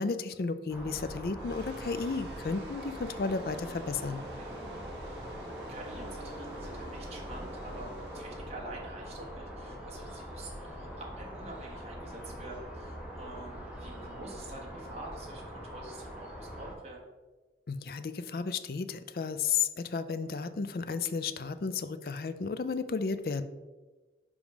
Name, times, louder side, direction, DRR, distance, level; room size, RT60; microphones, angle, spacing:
voice 1, 0.0-4.2 17.7-23.4, left 5 dB, 55° left, 12 dB, 0.4 m, -33 dB
sound 1, 0.7-16.7, equal, 5° right, 1.1 m, -43 dB
sound 2, 1.4-9.9, right 2 dB, 85° right, 0.8 m, -50 dB
voice 2, 4.4-17.1, right 2 dB, 35° right, -2 dB, 1.3 m, -47 dB
5.2 x 4.9 x 5.0 m, 1.2 s
head